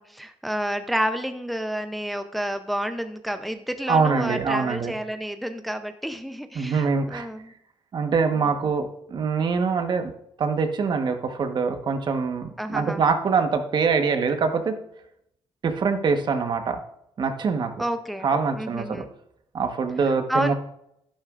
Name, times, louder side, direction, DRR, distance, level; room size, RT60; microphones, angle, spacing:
voice 1, 0.0-7.5 12.6-13.0 17.8-18.3 18.5-19.1 20.3-20.5, equal, ahead, 8 dB, 0.6 m, -29 dB
voice 2, 3.9-4.9 6.5-7.3 7.9-10.1 10.4-14.8 15.6-16.8 17.2-17.7 18.2-19.1 19.5-20.5, right 5 dB, 50° right, 6 dB, 1.2 m, -24 dB
11.5 x 11.5 x 2.5 m, 0.76 s
cardioid pair, 105°, 10 cm